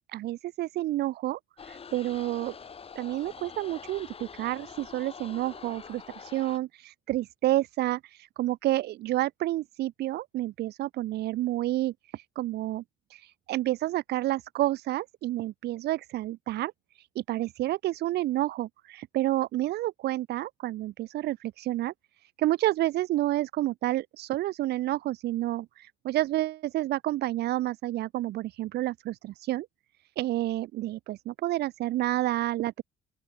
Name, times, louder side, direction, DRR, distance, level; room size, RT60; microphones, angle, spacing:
voice 1, 0.1-1.4 1.7-2.5 2.9-12.8 13.1-21.9 22.2-29.7 30.2-32.8, right 15 dB, 75° right, 3.3 m, -30 dB
sound 1, 1.6-6.6, left 6 dB, 35° left, 6.6 m, -45 dB
open air
cardioid pair, 110°, 17 cm